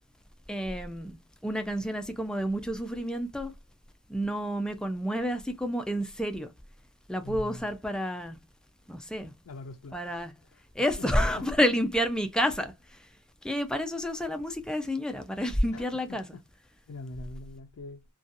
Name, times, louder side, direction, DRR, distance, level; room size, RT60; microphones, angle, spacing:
voice 1, 0.5-3.5 4.1-6.5 7.1-8.4 8.9-9.3 9.9-10.3 10.7-13.1 13.4-16.2, equal, 5° left, 0.3 m, -29 dB
voice 2, 7.2-7.7 9.5-10.2 10.4-10.6 11.0-11.5 15.7-16.4 16.9-18.0, left 2 dB, 80° left, 0.4 m, -44 dB
2.6 x 2.2 x 2.4 m
head